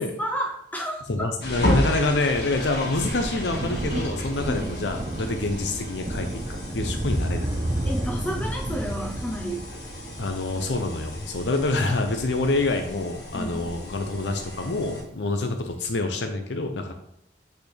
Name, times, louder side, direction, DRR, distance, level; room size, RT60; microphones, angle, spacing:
voice 1, 0.2-1.0 4.5-4.6 7.8-9.7 13.3-13.7, equal, 10° left, -1 dB, 0.6 m, -31 dB
voice 2, 1.1-7.5 10.2-16.9, left 2 dB, 90° left, 5 dB, 0.7 m, -27 dB
sound 1, 1.4-15.0, left 1 dB, 70° left, 1.7 m, -33 dB
Thunder, 1.9-14.8 15.7-15.8, right 1 dB, 30° right, 0.6 m, -32 dB
8.2 x 4.2 x 3.3 m, 0.75 s
head